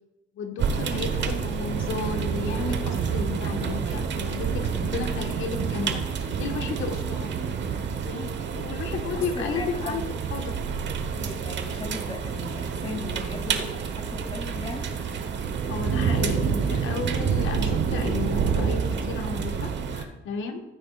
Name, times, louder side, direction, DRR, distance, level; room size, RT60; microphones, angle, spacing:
voice 1, 0.4-7.3 8.0-10.0 10.3-10.5 15.7-20.6, left 4 dB, 85° left, 4 dB, 1.5 m, -33 dB
sound 1, 0.6-20.0, right 6 dB, 65° right, 1.2 m, -28 dB
voice 2, 9.0-10.0 11.1-14.9, left 3 dB, 30° left, 1 dB, 2.9 m, -38 dB
15.0 x 8.9 x 2.5 m, 1.1 s
cardioid pair, 90°, 20 cm